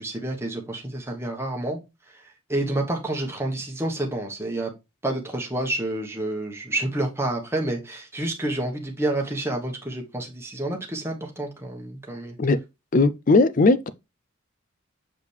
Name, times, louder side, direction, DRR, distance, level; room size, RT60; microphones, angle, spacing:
voice 1, 0.0-1.8 2.1-2.2 2.5-4.7 5.0-12.4, right 1 dB, 10° right, 1.2 m, -29 dB
voice 2, 12.9-13.9, left 3 dB, 40° left, 0.5 m, -18 dB
6.7 x 5.0 x 3.3 m
head